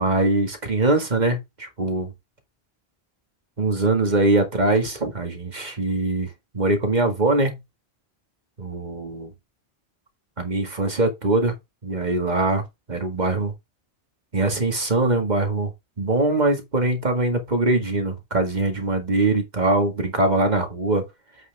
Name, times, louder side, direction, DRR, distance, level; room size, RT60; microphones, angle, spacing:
voice 1, 0.0-2.1 3.6-7.6 8.6-9.3 10.4-11.5 11.8-13.5 14.3-15.7 16.0-21.1, right 2 dB, 45° right, 1.9 m, -22 dB
7.8 x 5.8 x 3.5 m
omnidirectional pair, 1.1 m